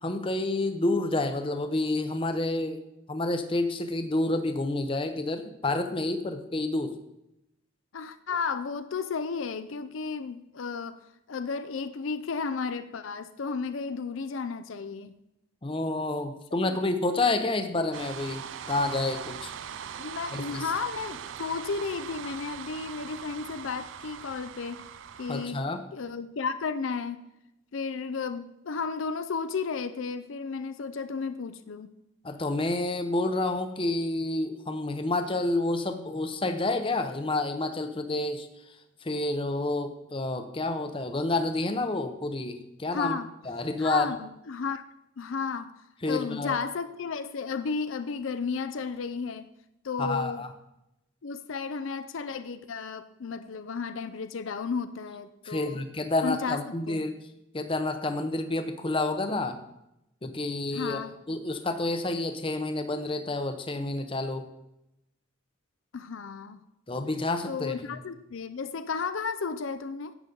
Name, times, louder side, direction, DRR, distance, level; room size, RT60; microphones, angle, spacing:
voice 1, 0.0-2.8 3.1-7.0 15.6-18.4 18.7-19.5 20.3-20.6 25.3-25.8 32.2-38.5 39.0-43.2 43.5-44.1 46.0-46.6 50.0-50.5 55.4-57.1 57.5-59.6 60.2-64.4 66.9-67.9, left 2 dB, 25° left, 8 dB, 0.7 m, -29 dB
voice 2, 7.9-11.0 11.3-15.1 16.6-16.8 20.0-24.8 25.2-25.6 25.9-27.2 27.7-31.9 42.9-43.3 43.8-44.8 45.2-45.7 46.0-49.5 49.8-50.5 51.2-55.8 56.2-56.6 56.9-57.0 60.7-61.1 65.9-66.6 67.4-70.1, left 5 dB, 70° left, 11 dB, 0.5 m, -33 dB
sound 1, 17.9-25.5, right 8 dB, 65° right, 0.4 m, -41 dB
11.0 x 8.2 x 3.8 m, 0.87 s
head